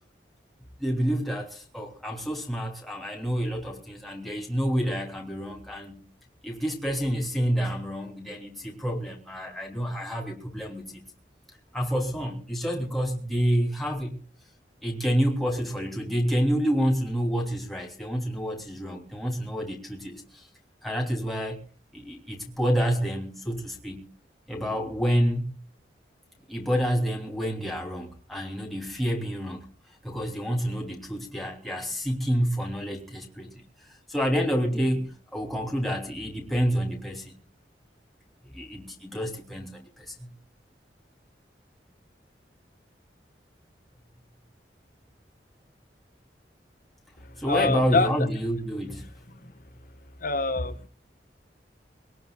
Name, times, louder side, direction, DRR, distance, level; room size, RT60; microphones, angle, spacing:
voice 1, 0.8-6.0 6.4-11.0 11.7-14.2 14.8-20.5 20.8-21.6 21.9-24.0 24.5-25.5 26.5-29.6 30.0-33.5 34.1-37.4 38.5-40.3 47.4-49.1, equal, ahead, 3.1 m, -28 dB
voice 2, 47.2-48.1 49.3-49.5 50.2-50.9, left 3 dB, 50° left, 1.3 m, -26 dB
24.0 x 18.5 x 2.4 m
head